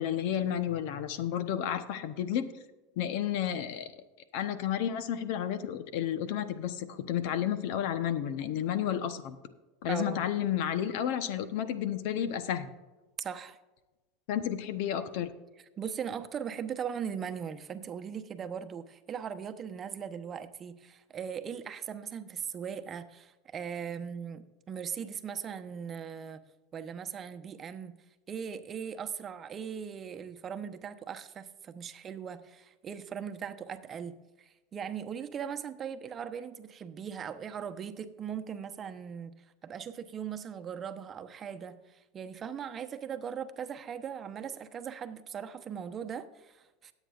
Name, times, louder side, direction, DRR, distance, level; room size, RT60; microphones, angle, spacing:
voice 1, 0.0-2.5 3.0-3.9 4.3-9.4 9.8-12.7 14.3-15.3, left 10 dB, 65° left, 11 dB, 0.9 m, -31 dB
voice 2, 9.9-10.3 13.2-13.6 15.8-26.4 26.7-27.9 28.3-39.4 39.6-46.9, right 7 dB, 35° right, 9 dB, 0.9 m, -39 dB
19.0 x 8.2 x 2.5 m, 1.1 s
hypercardioid pair, 100°, 0 cm